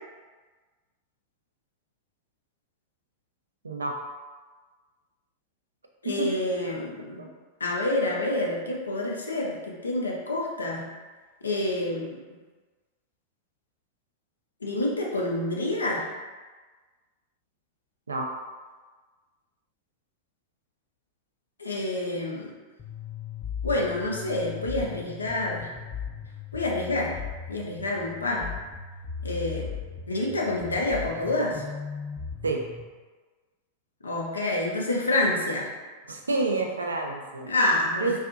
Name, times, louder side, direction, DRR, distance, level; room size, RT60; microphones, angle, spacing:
voice 1, 3.6-4.0 6.0-6.3 7.2-7.3 18.1-18.3 32.4-32.6 36.1-37.5 38.0-38.2, right 3 dB, 75° right, 2 dB, 0.3 m, -28 dB
voice 2, 6.0-7.2 7.6-10.9 11.4-12.2 14.6-16.1 21.6-22.5 23.6-25.7 26.5-27.2 27.5-28.6 29.2-29.7 30.1-31.6 34.0-35.7 37.4-38.2, left 1 dB, 75° left, -2 dB, 0.5 m, -28 dB
sound 1, 22.8-32.8, left 6 dB, 35° left, 0.6 m, -38 dB
2.6 x 2.4 x 2.4 m, 1.3 s
figure-of-eight pair, 90°, 0 cm